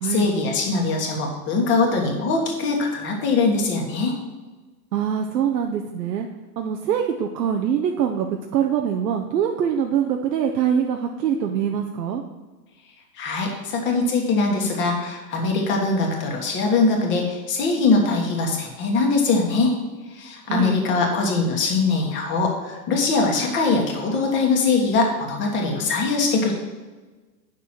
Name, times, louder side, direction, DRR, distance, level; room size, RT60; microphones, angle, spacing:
voice 1, 0.0-4.2 13.2-19.7 20.1-26.5, left 3 dB, 25° left, 1 dB, 1.5 m, -22 dB
voice 2, 4.9-6.3 6.6-12.2 20.5-20.8, right 8 dB, 80° right, 3 dB, 0.9 m, -23 dB
9.2 x 6.1 x 4.5 m, 1.3 s
hypercardioid pair, 150°, 49 cm